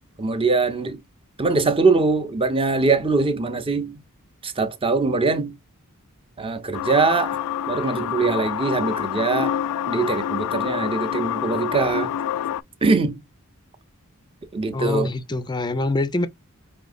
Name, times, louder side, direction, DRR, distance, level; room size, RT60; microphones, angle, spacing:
voice 1, 0.2-1.0 1.4-4.0 4.4-5.6 6.4-7.4 7.7-9.6 9.9-12.1 12.8-13.2 14.5-15.1, right 3 dB, 25° right, 0.7 m, -22 dB
sound 1, 6.7-12.6, left 10 dB, 85° left, 0.3 m, -27 dB
voice 2, 14.7-16.3, left 2 dB, 20° left, 0.5 m, -24 dB
5.2 x 2.8 x 2.5 m
head